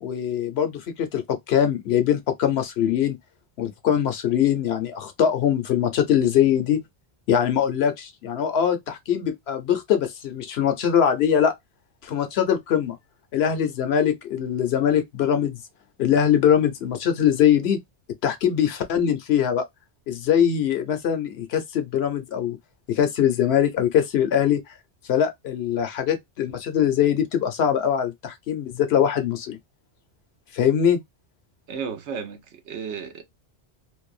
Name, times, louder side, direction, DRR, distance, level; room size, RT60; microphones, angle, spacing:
voice 1, 0.0-3.2 3.6-6.8 7.3-11.5 12.0-13.0 13.3-15.6 16.0-17.8 18.2-19.6 20.1-22.6 22.9-24.6 25.1-29.6 30.5-31.0, left 9 dB, 65° left, 0.8 m, -22 dB
voice 2, 31.7-33.2, right 6 dB, 75° right, 1.0 m, -33 dB
2.6 x 2.2 x 2.3 m
omnidirectional pair, 1.2 m